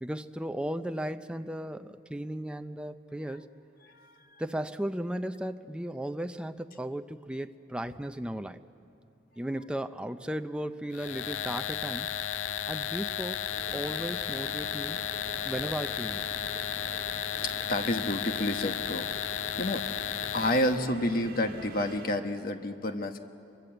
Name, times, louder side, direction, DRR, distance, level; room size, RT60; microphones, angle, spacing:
voice 1, 0.0-3.4 4.4-8.6 9.4-12.1 12.7-13.4 13.7-15.0 15.4-16.3, right 1 dB, 5° right, 8 dB, 0.6 m, -35 dB
sound 1, 10.9-20.8, left 10 dB, 85° left, 0.5 m, -34 dB
sound 2, 13.5-22.1, right 3 dB, 55° right, 1.4 m, -46 dB
voice 2, 17.4-19.9 20.3-23.2, left 1 dB, 50° left, 6 dB, 1.3 m, -30 dB
24.5 x 23.0 x 8.0 m, 2.6 s
head